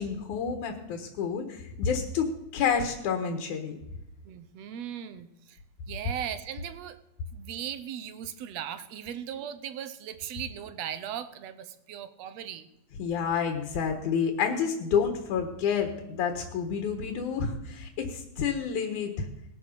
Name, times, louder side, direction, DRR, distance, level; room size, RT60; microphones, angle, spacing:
voice 1, 0.0-3.8 13.0-19.3, left 6 dB, 80° left, 4 dB, 2.8 m, -29 dB
voice 2, 4.3-5.6 5.9-7.0 7.3-12.7, right 9 dB, 65° right, 12 dB, 1.9 m, -38 dB
19.0 x 11.0 x 6.7 m, 0.88 s
omnidirectional pair, 3.5 m